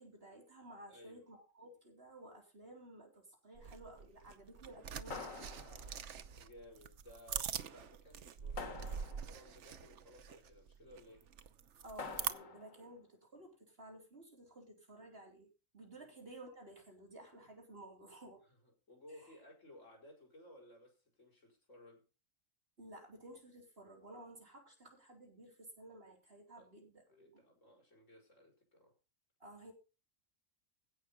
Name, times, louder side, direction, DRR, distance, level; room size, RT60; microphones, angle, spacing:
voice 1, 0.0-5.8 11.8-15.5 15.7-18.4 19.2-19.4 22.8-27.4 29.4-29.7, right 1 dB, 45° right, 4.1 m, -55 dB
voice 2, 0.9-1.3 6.4-11.3 12.8-12.9 16.0-16.1 18.4-18.6 18.9-22.1 26.5-26.7 27.1-28.9, left 1 dB, 70° left, 5.6 m, -59 dB
sound 1, 3.5-12.3, right 7 dB, 65° right, 1.2 m, -44 dB
sound 2, 5.1-6.2 8.6-9.5 12.0-12.8, left 4 dB, 85° left, 2.2 m, -47 dB
16.5 x 6.2 x 5.6 m
omnidirectional pair, 1.4 m